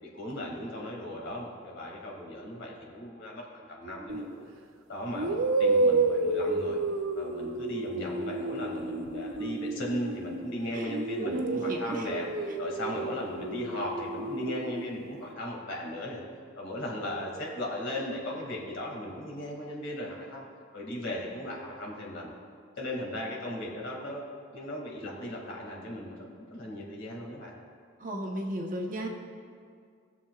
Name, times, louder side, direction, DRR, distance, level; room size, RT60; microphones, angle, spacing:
voice 1, 0.0-4.5 4.9-6.8 7.1-12.2 12.6-16.2 16.6-20.4 20.7-22.3 22.8-24.2 24.5-27.5, left 1 dB, 65° left, -2 dB, 2.3 m, -37 dB
sound 1, 4.1-4.3 5.1-10.5 10.9-14.9, right 3 dB, 85° right, 0.7 m, -30 dB
voice 2, 11.2-12.1 28.0-29.1, right 1 dB, 40° right, 1 dB, 1.0 m, -34 dB
20.0 x 7.2 x 2.4 m, 2.2 s
head